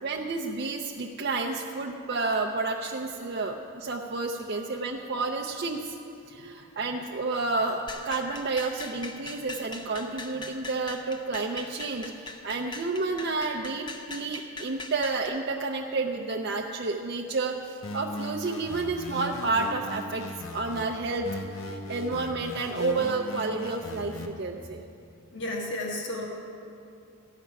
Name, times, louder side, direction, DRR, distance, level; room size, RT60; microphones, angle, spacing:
voice 1, 0.0-6.0 6.3-20.2 20.5-24.8, right 3 dB, 50° right, 1 dB, 0.5 m, -30 dB
sound 1, 7.9-15.3, left 3 dB, 20° left, 0.6 m, -41 dB
sound 2, 17.8-20.8 21.2-24.3, left 1 dB, 70° left, 0.9 m, -38 dB
voice 2, 25.3-26.3, left 1 dB, 55° left, -1 dB, 1.5 m, -32 dB
13.5 x 5.9 x 9.2 m, 2.6 s
head